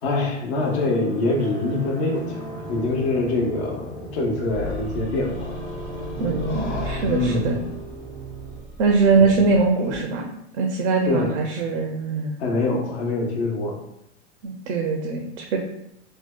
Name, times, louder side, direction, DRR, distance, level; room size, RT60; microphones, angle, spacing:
voice 1, 0.0-5.6 7.0-7.5 9.2-9.3 11.1-11.3 12.4-13.8, left 2 dB, 65° left, 0 dB, 0.8 m, -24 dB
sound 1, 0.6-8.6, right 2 dB, 15° left, 0.3 m, -36 dB
sound 2, 4.5-10.0, left 2 dB, 90° left, 1.2 m, -35 dB
voice 2, 6.2-7.6 8.8-10.3 10.5-12.4 14.4-15.6, right 4 dB, 80° right, 2 dB, 0.5 m, -22 dB
2.6 x 2.2 x 2.2 m, 0.80 s
hypercardioid pair, 115°, 35 cm